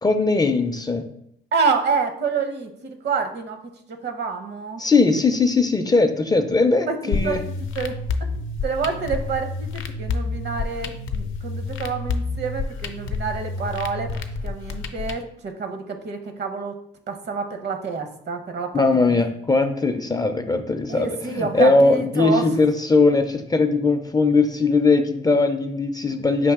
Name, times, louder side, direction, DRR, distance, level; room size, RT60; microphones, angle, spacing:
voice 1, 0.0-1.1 4.8-7.4 18.7-26.5, left 3 dB, 20° left, 7 dB, 0.4 m, -19 dB
voice 2, 1.5-4.8 6.9-7.4 7.7-8.0 8.6-14.1 14.4-16.8 17.1-18.7 20.9-22.5, right 5 dB, 60° right, 6 dB, 0.8 m, -27 dB
sound 1, 7.1-15.1, left 4 dB, 80° left, 0.5 m, -29 dB
5.4 x 2.7 x 3.5 m, 0.74 s
cardioid pair, 90°, 20 cm